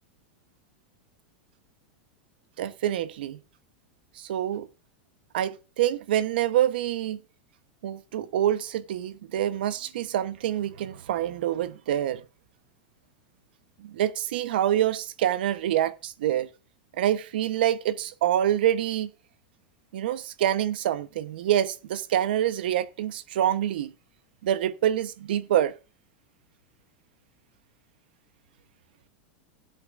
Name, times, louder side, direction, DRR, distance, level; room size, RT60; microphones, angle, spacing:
voice 1, 2.6-3.4 4.2-4.6 5.3-7.2 7.8-12.2 13.8-16.5 17.0-19.1 19.9-23.9 24.4-25.7, right 11 dB, 80° right, 1.0 m, -26 dB
18.0 x 7.9 x 2.6 m
supercardioid pair, 150°, 5 cm